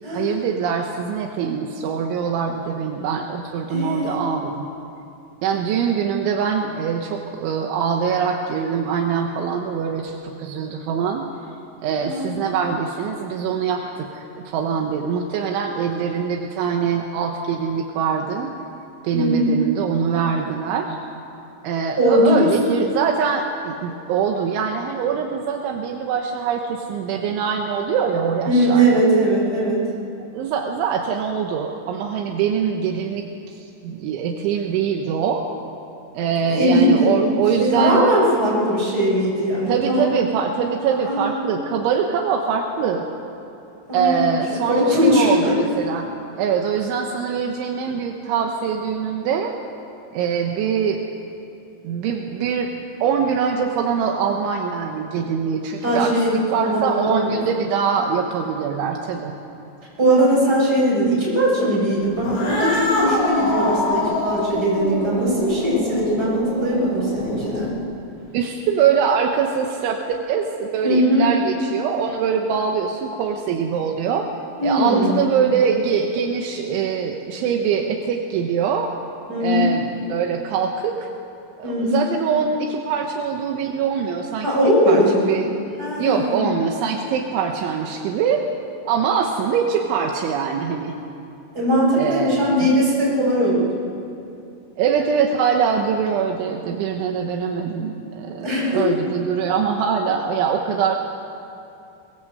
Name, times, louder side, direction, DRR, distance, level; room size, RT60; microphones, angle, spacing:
voice 1, 0.1-4.7 5.4-11.3 11.8-18.5 19.0-21.0 21.6-29.0 30.3-35.4 36.1-38.0 39.7-43.0 43.9-46.1 46.4-49.5 50.1-51.1 51.8-52.7 53.0-59.4 68.3-74.3 74.6-78.9 79.4-81.0 81.6-84.5 84.9-85.5 86.0-88.4 88.9-91.0 92.0-92.7 94.8-101.0, right 7 dB, 80° right, 2 dB, 3.4 m, -23 dB
voice 2, 3.7-4.2 12.0-12.5 19.1-19.6 22.0-22.5 28.4-29.9 36.5-37.1 37.6-40.0 41.1-41.4 43.9-44.3 44.7-45.5 55.8-57.4 60.0-67.8 70.8-71.3 74.6-75.2 79.3-79.7 81.6-82.0 84.4-85.4 85.8-86.4 91.5-93.7 98.4-98.9, equal, 20° right, -6 dB, 7.8 m, -19 dB
Cat, 62.2-67.8, left 1 dB, 55° left, 6.1 m, -25 dB
22.0 x 20.0 x 7.9 m, 2.7 s
omnidirectional pair, 5.6 m